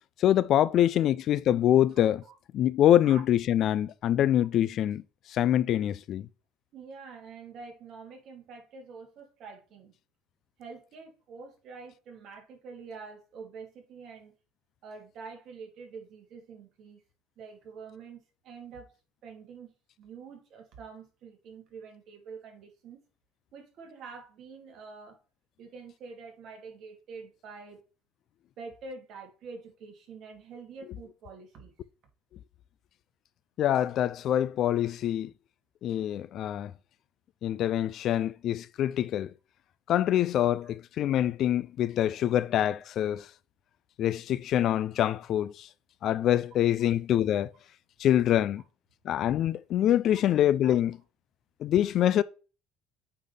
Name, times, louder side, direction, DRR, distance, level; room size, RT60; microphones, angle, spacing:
voice 1, 0.2-2.2 2.5-5.0 5.3-6.3 33.6-35.3 35.8-36.7 37.4-39.3 39.9-43.3 44.0-45.7 46.0-47.5 48.0-48.6 49.0-51.0 51.6-52.2, left 11 dB, 55° left, 0.4 m, -25 dB
voice 2, 2.0-2.3 3.0-3.2 6.7-9.9 10.6-14.4 14.8-17.0 17.4-18.9 19.2-23.0 23.5-25.2 25.6-27.8 28.6-31.7 34.8-34.9 40.6-40.7 50.1-50.2 50.6-50.7, right 5 dB, 55° right, 2.4 m, -46 dB
8.4 x 4.1 x 3.3 m
cardioid pair, 120°, 0 cm